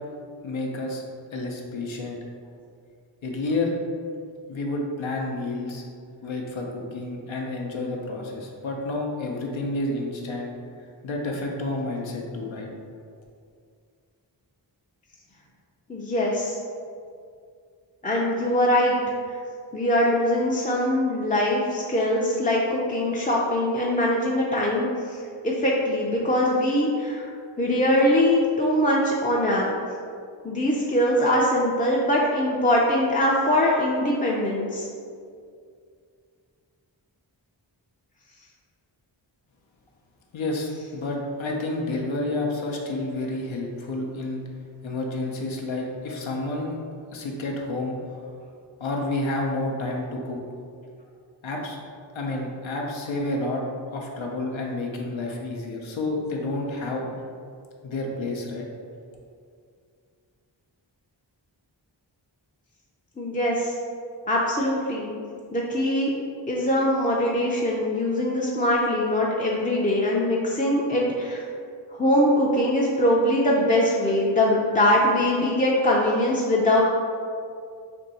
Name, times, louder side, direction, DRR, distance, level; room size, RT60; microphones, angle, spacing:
voice 1, 0.4-1.0 1.3-2.2 3.2-3.7 4.5-5.8 6.2-10.5 11.0-12.7 40.3-44.4 44.8-46.8 47.1-48.0 48.8-50.4 51.4-51.8 52.1-53.6 53.9-57.1 57.8-58.7, left 2 dB, 85° left, 0 dB, 0.6 m, -30 dB
voice 2, 15.9-16.6 18.0-19.0 19.7-25.2 25.4-27.3 27.6-29.7 30.4-34.9 63.2-63.7 64.3-65.1 65.5-66.1 66.5-71.4 71.9-76.8, left 1 dB, 20° left, -4 dB, 0.4 m, -22 dB
2.6 x 2.6 x 4.0 m, 2.3 s
wide cardioid pair, 45°, 46 cm